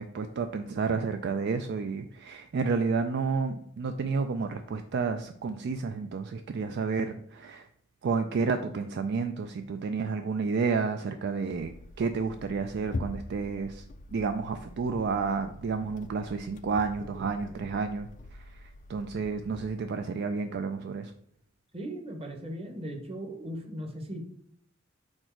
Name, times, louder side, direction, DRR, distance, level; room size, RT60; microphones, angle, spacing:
voice 1, 0.0-7.7 8.0-13.8 14.1-21.1, right 4 dB, 55° right, 8 dB, 0.3 m, -31 dB
sound 1, 11.5-20.2, left 2 dB, 40° left, 0.4 m, -44 dB
voice 2, 17.0-17.6 21.7-24.2, right 1 dB, 30° right, 3 dB, 1.0 m, -39 dB
4.9 x 4.4 x 4.5 m, 0.65 s
head